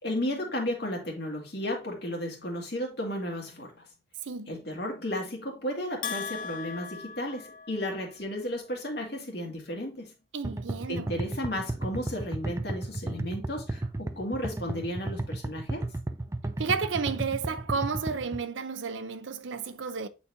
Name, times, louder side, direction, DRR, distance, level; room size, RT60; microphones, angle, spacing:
voice 1, 0.0-3.8 4.5-10.1 10.9-15.9, left 1 dB, 60° left, 2.0 m, -34 dB
voice 2, 4.3-4.6 10.3-11.1 16.6-20.1, right 5 dB, 85° right, 0.6 m, -32 dB
Bell, 6.0-8.2, left 6 dB, 45° left, 0.5 m, -38 dB
sound 1, 10.4-18.4, right 2 dB, 15° right, 0.3 m, -33 dB
8.7 x 4.1 x 2.6 m
head